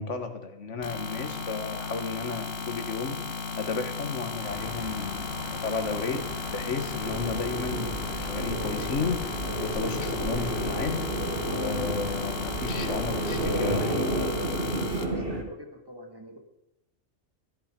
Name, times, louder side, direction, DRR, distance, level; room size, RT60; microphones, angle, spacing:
voice 1, 0.0-11.1 11.5-14.0, left 4 dB, 70° left, 7 dB, 1.7 m, -33 dB
sound 1, 0.8-15.0, left 5 dB, 90° left, 1.7 m, -35 dB
sound 2, 4.4-13.5, equal, 70° right, 4.4 m, -40 dB
sound 3, 7.0-15.4, right 1 dB, 45° right, 1.7 m, -31 dB
voice 2, 15.0-16.4, equal, 20° right, 4 dB, 1.8 m, -45 dB
14.5 x 10.5 x 5.2 m, 0.88 s
omnidirectional pair, 1.3 m